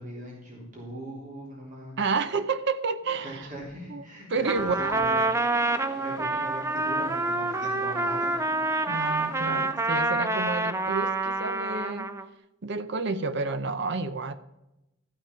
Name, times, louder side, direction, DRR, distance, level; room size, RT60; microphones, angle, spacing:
voice 1, 0.0-2.0 3.2-5.3 5.9-8.5, right 1 dB, 40° right, -4 dB, 3.6 m, -40 dB
voice 2, 2.0-3.5 3.9-4.0 4.3-5.0 8.9-12.1 12.6-14.3, right 4 dB, 60° right, 12 dB, 0.7 m, -30 dB
sound 1, 4.4-9.7, left 2 dB, 45° left, 2.2 m, -45 dB
Trumpet, 4.4-12.3, right 2 dB, 15° right, 0.5 m, -27 dB
14.0 x 6.0 x 5.7 m, 0.91 s
head